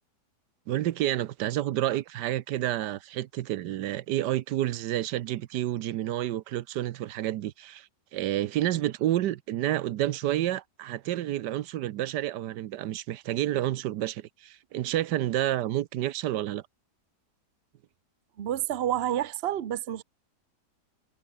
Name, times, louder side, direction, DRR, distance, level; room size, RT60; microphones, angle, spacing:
voice 1, 0.7-16.6, right 13 dB, 85° right, 1.3 m, -29 dB
voice 2, 18.4-20.0, right 11 dB, 45° right, 0.9 m, -29 dB
omnidirectional pair, 1.8 m